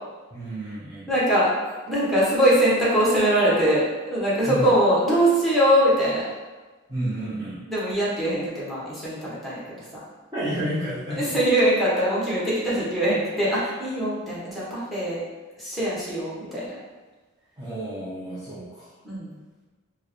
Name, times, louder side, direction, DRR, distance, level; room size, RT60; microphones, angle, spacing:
voice 1, 0.3-1.1 4.4-4.6 6.9-7.6 10.3-11.4 17.6-18.9, right 1 dB, 15° right, -12 dB, 0.7 m, -31 dB
voice 2, 1.1-3.8 4.1-6.2 7.7-9.8 11.1-15.2 15.6-16.8 19.0-19.4, right 1 dB, ahead, -8 dB, 1.1 m, -22 dB
4.5 x 2.1 x 3.1 m, 1.3 s
head